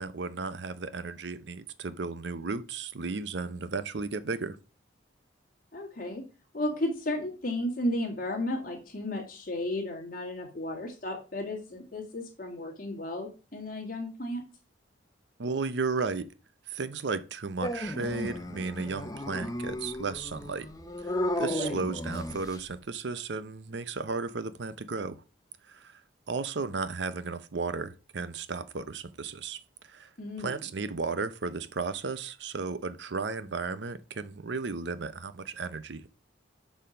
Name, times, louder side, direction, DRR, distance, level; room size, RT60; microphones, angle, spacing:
voice 1, 0.0-4.6 15.4-16.3 16.7-20.7 21.4-25.2 25.7-26.0 26.3-30.1 30.4-36.1, right 4 dB, 65° right, 0.6 m, -34 dB
voice 2, 5.7-6.2 6.5-14.4 21.6-21.7 30.2-30.6, left 1 dB, 45° left, 2.0 m, -34 dB
Dog, 17.6-22.7, left 1 dB, 20° left, 0.8 m, -34 dB
6.8 x 5.7 x 5.0 m
head